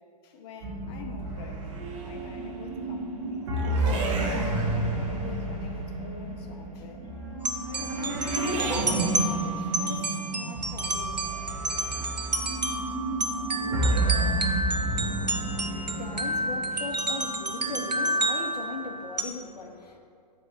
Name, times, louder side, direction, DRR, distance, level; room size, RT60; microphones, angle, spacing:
voice 1, 0.2-1.7 2.0-3.9 4.4-7.1 7.6-11.3 12.0-12.3, left 4 dB, 40° left, 2 dB, 1.1 m, -44 dB
sound 1, 0.6-18.1, right 2 dB, 50° right, 1.4 m, -31 dB
sound 2, 7.4-19.2, right 1 dB, 90° right, 0.8 m, -30 dB
voice 2, 14.7-20.0, left 3 dB, 75° left, 2 dB, 0.8 m, -39 dB
7.9 x 3.9 x 6.4 m, 2.3 s
figure-of-eight pair, 115°, 21 cm